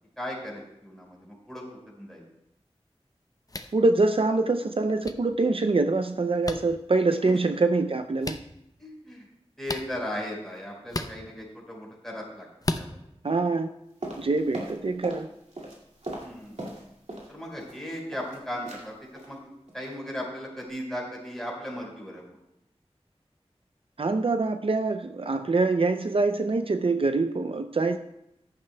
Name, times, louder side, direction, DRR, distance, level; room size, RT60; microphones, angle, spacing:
voice 1, 0.2-2.2 8.8-9.3 9.6-12.4 12.7-13.0 16.2-16.6 17.3-22.2, equal, 5° left, -2 dB, 4.5 m, -37 dB
sound 1, 3.5-3.7 5.0-5.1 6.4-6.6 8.2-8.4 9.6-9.9 10.9-11.1 12.6-12.9, left 2 dB, 35° left, 0.6 m, -31 dB
voice 2, 3.7-8.4 13.2-13.7 14.2-15.3 24.0-28.0, right 3 dB, 60° right, 8 dB, 0.5 m, -24 dB
sound 2, 14.0-15.3 15.5-17.3 17.6-18.4 18.7-18.9 19.2-19.4 19.7-19.9 20.2-20.3, right 1 dB, 85° right, 2.2 m, -38 dB
14.5 x 11.0 x 2.2 m, 0.82 s
wide cardioid pair, 55°, 11 cm